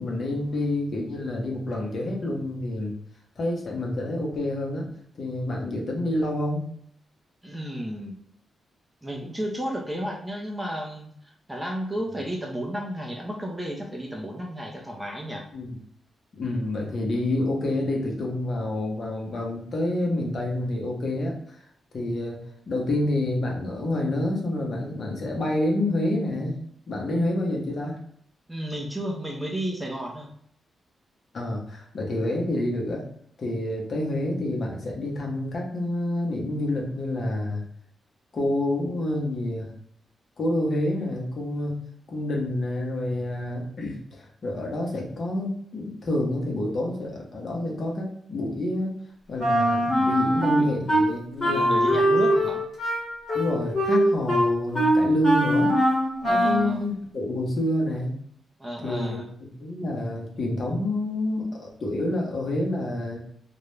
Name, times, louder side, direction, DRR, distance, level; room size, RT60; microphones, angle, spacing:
voice 1, 0.0-2.9 3.4-4.9 5.2-6.6 15.5-15.7 16.4-21.3 21.9-22.4 22.7-26.6 26.9-28.0 31.3-33.0 33.4-37.6 38.3-39.7 40.4-41.8 42.1-48.9 49.3-52.0 53.3-55.7 56.3-58.2 58.8-59.2 59.6-63.2, left 1 dB, 45° left, -1 dB, 0.7 m, -28 dB
voice 2, 7.4-8.2 9.0-15.4 28.5-30.3 50.5-50.7 51.4-52.6 56.2-56.8 58.6-59.3, equal, 10° right, -1 dB, 0.4 m, -33 dB
Wind instrument woodwind instrument, 49.4-51.0 51.4-56.7, equal, 25° left, 1.1 m, -22 dB
2.3 x 2.0 x 3.0 m, 0.66 s
wide cardioid pair, 155°, 0 cm